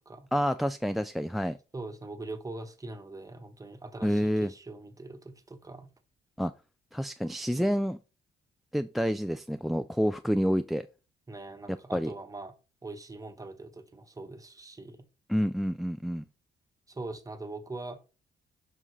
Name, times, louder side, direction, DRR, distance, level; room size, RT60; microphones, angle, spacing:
voice 1, 0.3-1.6 4.0-4.5 6.4-6.5 6.9-8.0 8.7-10.9 11.7-12.1 15.3-16.3, equal, ahead, 0.3 m, -28 dB
voice 2, 1.7-5.9 11.3-12.5 12.8-15.0 16.9-18.0, right 2 dB, 15° right, 1.2 m, -42 dB
7.3 x 5.6 x 3.3 m
cardioid pair, 90°, 20 cm